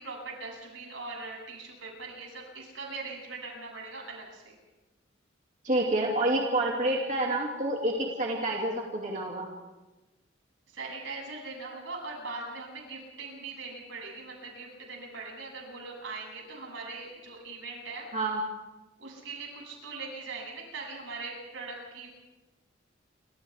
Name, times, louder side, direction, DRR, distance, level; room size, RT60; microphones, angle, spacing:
voice 1, 0.0-4.6 10.7-18.0 19.0-22.1, right 3 dB, 90° right, -1 dB, 7.9 m, -41 dB
voice 2, 5.6-9.5 18.1-18.4, right 1 dB, 40° right, -1 dB, 2.5 m, -28 dB
29.0 x 25.5 x 3.6 m, 1.1 s
head